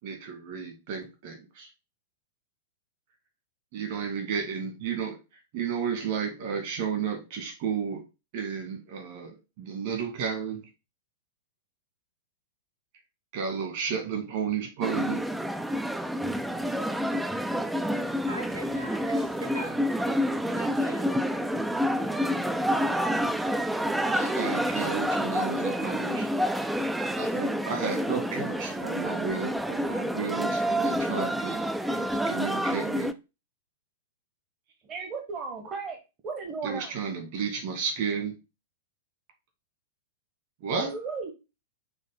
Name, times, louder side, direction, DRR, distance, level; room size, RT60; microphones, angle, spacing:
voice 1, 0.0-1.7 3.7-8.0 8.3-10.6 13.3-15.2 24.1-26.3 27.2-33.1 36.6-38.3 40.6-40.9, right 6 dB, 45° right, 2.3 m, -33 dB
sound 1, 14.8-33.1, equal, 5° right, 0.5 m, -28 dB
voice 2, 18.3-20.2 20.5-21.1 22.0-22.1, right 2 dB, 85° right, 2.7 m, -42 dB
voice 3, 34.9-36.0 36.2-36.9 40.8-41.3, right 4 dB, 25° right, 1.2 m, -35 dB
6.5 x 3.4 x 5.2 m
figure-of-eight pair, 100°, 0 cm